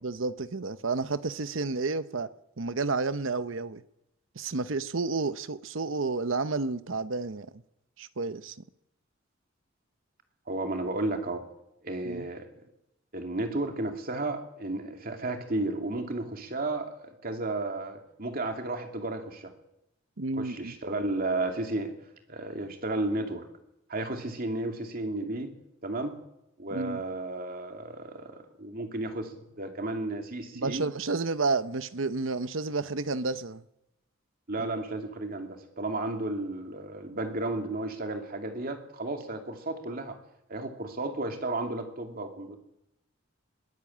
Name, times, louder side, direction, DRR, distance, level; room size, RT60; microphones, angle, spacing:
voice 1, 0.0-2.3 2.6-3.8 4.4-7.5 8.0-8.6 12.0-12.3 20.2-20.7 26.7-27.0 30.5-33.6, right 3 dB, 70° right, 0.9 m, -31 dB
voice 2, 10.5-11.4 11.8-12.5 13.1-19.5 20.4-21.9 22.3-23.5 23.9-25.5 25.8-26.2 26.6-30.9 34.5-40.2 40.5-42.6, right 2 dB, 45° right, 2.6 m, -33 dB
22.0 x 14.0 x 8.7 m
head